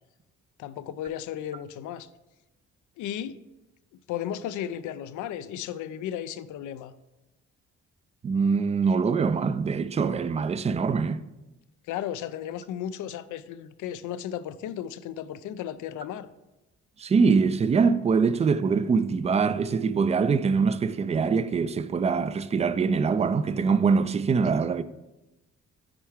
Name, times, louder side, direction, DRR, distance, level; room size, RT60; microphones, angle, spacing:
voice 1, 0.6-2.1 3.0-3.4 4.1-6.9 11.9-16.3, left 10 dB, 80° left, 0.5 m, -34 dB
voice 2, 8.2-11.2 17.0-24.8, right 5 dB, 20° right, 0.3 m, -23 dB
8.8 x 4.5 x 3.5 m
cardioid pair, 90°, 30 cm